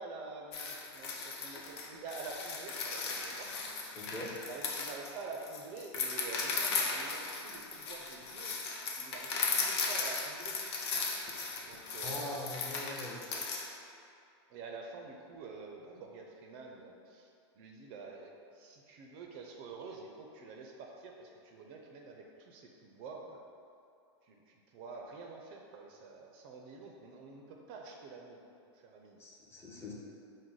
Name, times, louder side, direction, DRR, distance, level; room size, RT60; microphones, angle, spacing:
voice 1, 0.0-3.5 4.5-8.6 9.0-10.6 11.6-12.4 14.5-23.4 24.2-28.4 28.8-29.2, right 4 dB, 40° right, 1 dB, 0.4 m, -48 dB
sound 1, 0.5-13.7, left 4 dB, 70° left, 0.6 m, -37 dB
voice 2, 3.9-4.3 12.0-13.2 29.2-29.9, left 1 dB, 15° left, -3 dB, 0.5 m, -42 dB
4.6 x 2.1 x 3.8 m, 2.5 s
supercardioid pair, 140°, 15 cm